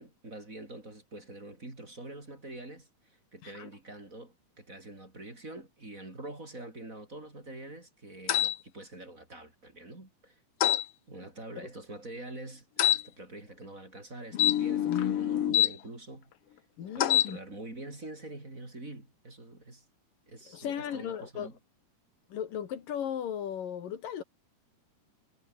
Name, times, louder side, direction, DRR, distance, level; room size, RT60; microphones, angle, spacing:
voice 1, 0.0-10.4 10.7-12.7 12.9-16.3 16.8-19.8 20.3-21.6, right 2 dB, 25° right, 5.0 m, -45 dB
sound 1, 8.3-8.5 10.6-10.8 12.8-13.0 14.3-15.7 17.0-17.3, left 11 dB, 60° left, 1.7 m, -25 dB
voice 2, 16.8-17.4 20.5-21.5 22.3-24.2, left 9 dB, 85° left, 4.0 m, -36 dB
omnidirectional pair, 3.8 m